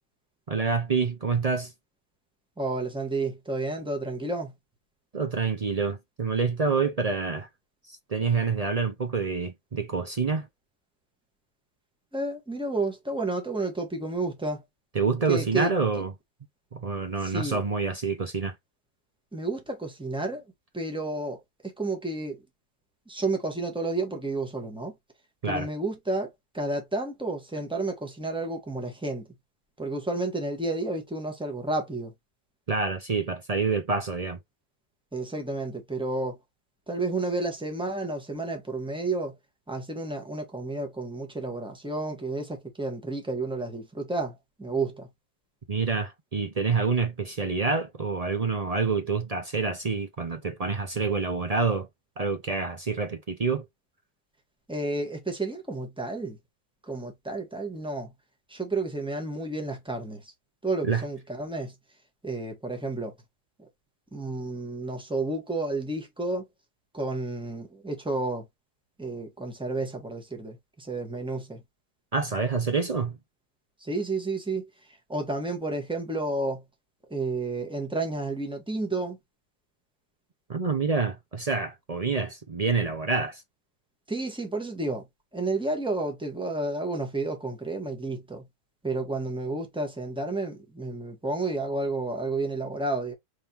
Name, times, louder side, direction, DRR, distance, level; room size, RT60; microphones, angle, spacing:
voice 1, 0.5-1.7 5.1-7.5 8.1-10.5 14.9-16.1 16.7-18.5 25.4-25.7 32.7-34.4 45.7-51.9 52.2-53.7 60.8-61.0 72.1-73.2 80.5-83.4, right 4 dB, 40° right, 0.5 m, -27 dB
voice 2, 2.6-4.5 12.1-14.6 15.3-15.7 17.2-17.6 19.3-20.4 20.7-22.4 23.1-24.9 25.4-29.3 29.8-32.1 35.1-36.4 36.9-39.3 39.7-45.1 54.7-56.4 56.8-58.1 58.5-60.3 60.6-61.7 62.2-63.1 63.6-63.7 64.1-66.5 66.9-68.4 69.0-71.6 73.8-74.7 75.1-76.6 77.1-79.2 84.1-85.0 85.3-88.4 88.8-93.1, right 2 dB, 5° right, 1.3 m, -31 dB
4.9 x 3.6 x 2.9 m
omnidirectional pair, 1.6 m